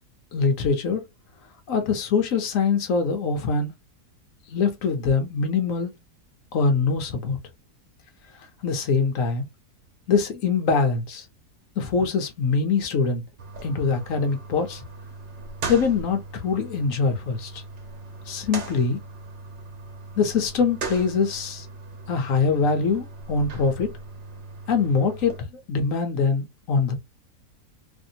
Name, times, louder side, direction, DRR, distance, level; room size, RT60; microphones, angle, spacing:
voice 1, 0.3-1.0 1.7-3.7 4.5-5.9 6.5-7.4 8.6-9.5 10.1-11.3 11.8-13.2 13.6-14.8 15.7-17.6 18.3-19.0 20.2-21.7 22.1-23.9 24.7-27.1, left 5 dB, 65° left, 1.0 m, -23 dB
sound 1, 13.4-25.4, right 3 dB, 85° right, 1.6 m, -39 dB
3.3 x 2.6 x 2.7 m
omnidirectional pair, 1.7 m